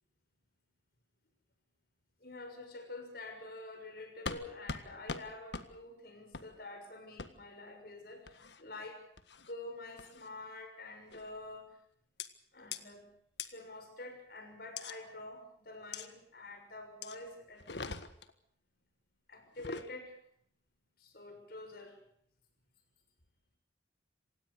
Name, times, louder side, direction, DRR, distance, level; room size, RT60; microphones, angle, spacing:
voice 1, 2.2-9.0 9.4-11.8 12.5-13.1 13.4-17.7 19.3-20.2 21.0-22.0, left 2 dB, 55° left, 6 dB, 6.6 m, -47 dB
sound 1, 4.3-4.4 4.7-4.8 5.1-5.2 5.5-5.7 6.3-6.5 7.2-7.3 8.3-8.6 9.2-9.5 10.0-10.3 11.1-11.4 12.2-12.3 12.7-12.8 13.4-13.5 14.8-14.9 15.9-16.1 17.0-17.2 17.6-18.3 19.5-19.9, left 4 dB, 70° left, 1.6 m, -41 dB
26.5 x 18.0 x 6.6 m, 0.66 s
head